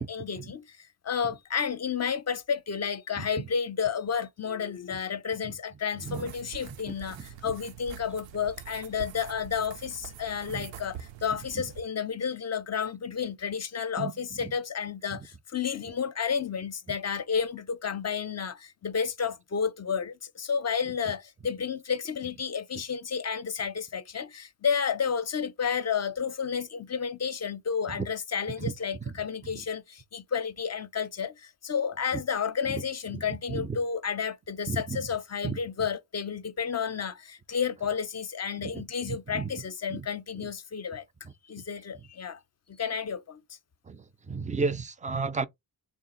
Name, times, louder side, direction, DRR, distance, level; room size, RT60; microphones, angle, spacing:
voice 1, 0.0-41.0 41.5-42.4 42.7-43.4, left 6 dB, 35° left, 0.5 m, -31 dB
voice 2, 6.0-6.3 10.5-10.7 14.0-14.5 15.1-15.2 27.9-28.0 28.6-28.7 29.0-29.1 32.1-32.2 32.7-32.8 33.1-33.2 33.5-33.8 34.7-35.0 35.4-35.6 38.6-39.5 39.9-40.1 40.4-40.5 41.2-41.6 43.9-45.5, right 4 dB, 20° right, 0.4 m, -34 dB
sound 1, 6.0-11.8, right 9 dB, 90° right, 0.5 m, -45 dB
3.6 x 2.4 x 3.9 m
cardioid pair, 70°, 44 cm